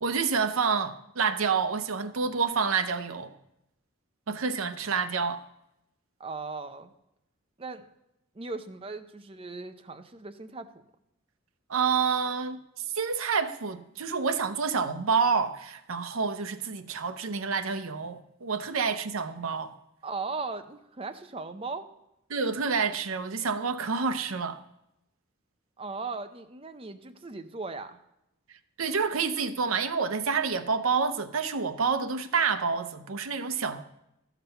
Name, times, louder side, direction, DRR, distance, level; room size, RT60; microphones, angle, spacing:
voice 1, 0.0-3.3 4.3-5.4 11.7-12.6 12.9-19.7 22.3-24.6 28.8-33.8, right 5 dB, 85° right, 0.7 m, -28 dB
voice 2, 6.2-6.9 7.6-7.9 8.3-10.7 20.0-21.9 25.8-28.0, right 3 dB, 25° right, 0.6 m, -38 dB
13.0 x 6.0 x 5.6 m
head